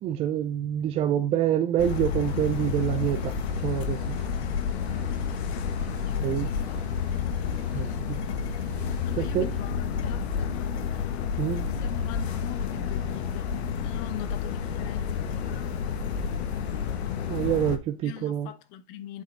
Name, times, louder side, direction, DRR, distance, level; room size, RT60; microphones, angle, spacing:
voice 1, 0.0-3.3 3.6-4.2 6.2-6.5 7.7-8.2 9.1-9.5 11.4-11.7 17.3-18.5, right 11 dB, 20° right, 0.3 m, -27 dB
sound 1, 1.8-17.8, left 6 dB, 80° left, 1.3 m, -30 dB
sound 2, 2.2-9.6, right 6 dB, 50° right, 2.1 m, -49 dB
voice 2, 6.0-6.8 7.8-8.2 9.0-13.6 13.8-15.9 18.0-19.2, left 12 dB, 50° left, 1.0 m, -43 dB
sound 3, 11.5-17.6, right 7 dB, 80° right, 2.9 m, -52 dB
8.1 x 5.0 x 3.2 m
supercardioid pair, 150°, 32 cm